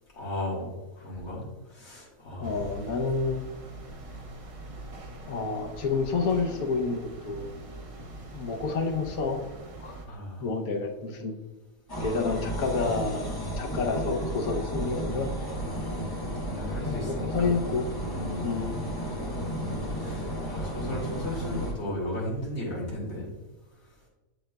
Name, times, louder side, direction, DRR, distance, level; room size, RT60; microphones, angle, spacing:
voice 1, 0.1-0.7 1.0-2.6 10.0-10.5 15.9-16.1 16.5-17.5 18.0-18.6 19.9-23.3, left 1 dB, 50° left, -5 dB, 2.2 m, -35 dB
voice 2, 2.4-3.4 5.3-7.5 8.3-9.5 9.8-11.3 12.0-15.3 16.8-17.9 18.4-18.8, left 4 dB, 90° left, 2 dB, 1.3 m, -29 dB
sound 1, 2.4-10.0, right 1 dB, 35° right, 0.6 m, -43 dB
sound 2, 11.9-21.7, right 1 dB, 20° left, 0.9 m, -33 dB
7.5 x 6.8 x 2.2 m, 1.1 s
omnidirectional pair, 1.5 m